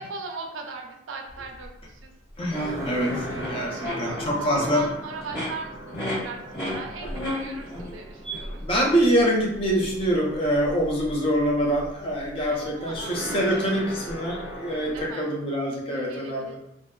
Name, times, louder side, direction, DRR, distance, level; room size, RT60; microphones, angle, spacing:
voice 1, 0.0-2.1 3.8-8.6 12.5-13.9 14.9-15.2 15.9-16.6, right 4 dB, 85° right, 2 dB, 0.4 m, -39 dB
sound 1, 1.3-15.1, right 1 dB, 15° right, 0.6 m, -39 dB
voice 2, 2.4-4.9 6.8-7.1 8.6-16.6, equal, 30° left, -2 dB, 0.4 m, -25 dB
sound 2, 2.5-4.9 5.2-5.5 5.9-6.2 6.5-6.8 7.1-7.9 8.2-8.4, equal, 65° left, 1.5 m, -32 dB
2.5 x 2.2 x 2.2 m, 0.82 s
head